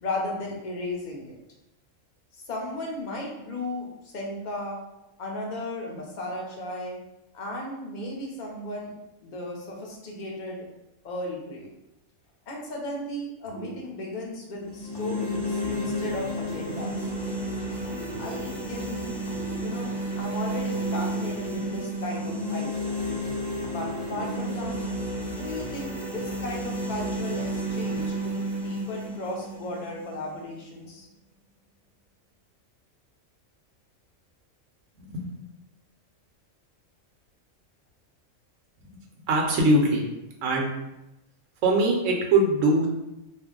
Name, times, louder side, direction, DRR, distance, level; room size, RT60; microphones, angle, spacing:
voice 1, 0.0-1.3 2.3-4.8 5.2-7.0 7.3-8.9 9.2-10.7 11.0-11.7 12.5-17.0 18.2-19.2 19.5-22.9 23.7-24.8 25.4-31.1, left 1 dB, 50° left, -2 dB, 0.6 m, -35 dB
sound 1, 13.5-14.5 14.9-17.3 17.8-20.2 20.7-23.1 23.6-25.1, right 3 dB, 70° left, 0.9 m, -42 dB
sound 2, 14.6-30.7, equal, 5° left, 0.6 m, -31 dB
voice 2, 35.0-35.3 39.3-40.1 40.4-40.7 41.6-42.9, right 2 dB, 75° right, 0 dB, 1.0 m, -22 dB
2.5 x 2.0 x 3.6 m, 0.91 s
omnidirectional pair, 1.3 m